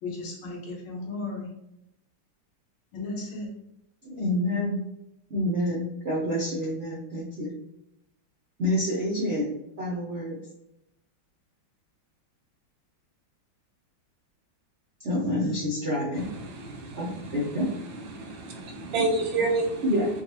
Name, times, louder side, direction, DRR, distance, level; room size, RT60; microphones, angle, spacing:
voice 1, 0.0-1.5 2.9-3.5, left 2 dB, 80° left, -1 dB, 1.8 m, -35 dB
voice 2, 4.0-4.8 5.3-7.5 8.6-10.4 15.0-16.3 16.9-17.7 19.8-20.1, left 1 dB, 60° right, -6 dB, 0.7 m, -28 dB
voice 3, 16.3-17.6 18.1-19.8, right 3 dB, 75° right, 2 dB, 1.4 m, -29 dB
5.1 x 2.3 x 2.8 m, 0.83 s
omnidirectional pair, 2.3 m